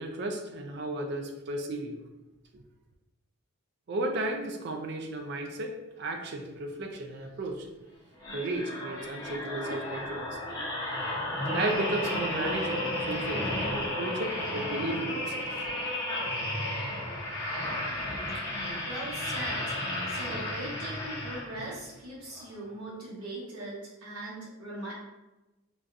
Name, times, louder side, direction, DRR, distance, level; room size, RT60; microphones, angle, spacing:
voice 1, 0.0-2.0 2.5-2.6 3.9-7.7 8.3-10.4 11.4-15.7, right 2 dB, 50° right, 4 dB, 0.4 m, -34 dB
sound 1, 8.2-21.8 22.3-22.5, left 1 dB, 15° left, 0.7 m, -33 dB
voice 2, 18.8-19.7 20.1-24.9, right 1 dB, 85° right, -6 dB, 1.1 m, -40 dB
3.9 x 2.3 x 2.4 m, 1.0 s
head